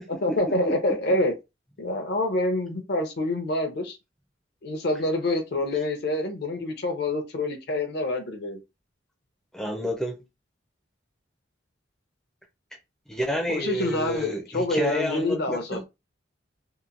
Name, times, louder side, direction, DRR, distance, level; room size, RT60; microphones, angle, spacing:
voice 1, 0.1-1.3 1.8-4.0 4.6-8.6 13.5-15.9, left 2 dB, 60° left, 0.7 m, -27 dB
voice 2, 0.7-1.0 9.5-10.2 13.1-15.8, equal, 5° left, 0.5 m, -29 dB
2.9 x 2.1 x 2.5 m
head